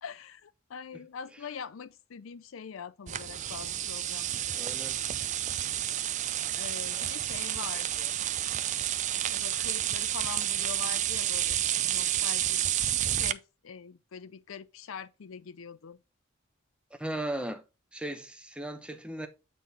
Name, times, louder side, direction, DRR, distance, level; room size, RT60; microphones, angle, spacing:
voice 1, 0.0-4.6 5.8-5.9 6.5-8.2 9.1-12.6 13.1-16.0, left 7 dB, 80° left, 0.5 m, -43 dB
sound 1, 3.1-13.3, right 12 dB, 35° right, 0.4 m, -30 dB
voice 2, 4.5-5.0 17.0-17.6 17.9-19.3, right 1 dB, 5° right, 0.9 m, -36 dB
8.5 x 3.8 x 4.0 m
head